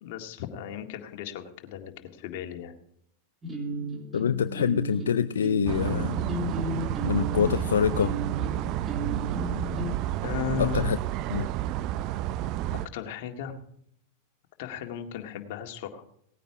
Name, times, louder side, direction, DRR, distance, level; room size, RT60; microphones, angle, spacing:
voice 1, 0.0-2.8 10.2-10.9 12.7-13.6 14.6-16.1, left 9 dB, 60° left, 4 dB, 1.9 m, -36 dB
sound 1, 3.4-9.9, right 1 dB, 20° right, 3.1 m, -34 dB
voice 2, 4.1-6.1 7.0-8.1 10.6-11.0 11.3-11.5, left 8 dB, 85° left, 12 dB, 0.4 m, -25 dB
sound 2, 5.7-12.9, right 14 dB, 50° right, 0.5 m, -30 dB
18.5 x 9.3 x 4.8 m, 0.71 s
hypercardioid pair, 105°, 0 cm